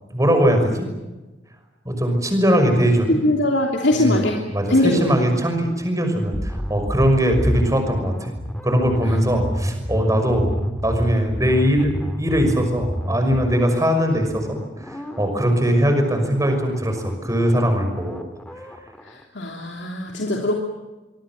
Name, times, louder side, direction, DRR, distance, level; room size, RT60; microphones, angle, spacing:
voice 1, 0.1-0.9 1.8-3.2 3.9-8.1 8.6-10.5 10.8-18.2, equal, 20° right, 5 dB, 6.0 m, -20 dB
voice 2, 3.1-4.4 4.7-5.1 19.3-20.6, left 1 dB, 70° left, 1 dB, 3.2 m, -20 dB
sound 1, 6.3-19.2, equal, 5° left, 2.4 m, -29 dB
26.5 x 23.0 x 7.8 m, 1.1 s
head